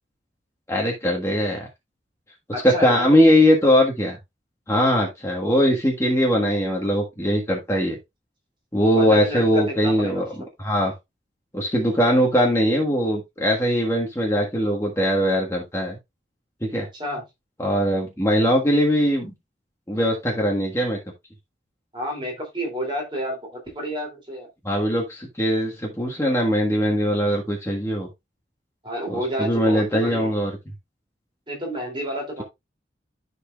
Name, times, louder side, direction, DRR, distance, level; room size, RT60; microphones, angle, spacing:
voice 1, 0.7-1.7 2.6-4.2 4.7-8.0 8.7-10.3 10.6-10.9 11.5-16.0 16.6-16.9 17.6-19.3 19.9-21.0 24.6-28.1 29.1-30.5, equal, 15° left, 1.5 m, -21 dB
voice 2, 2.5-3.1 4.8-5.0 8.9-10.3 16.9-17.2 21.9-24.5 28.8-30.4 31.5-32.4, equal, 25° right, 2.8 m, -30 dB
13.5 x 4.6 x 2.3 m
head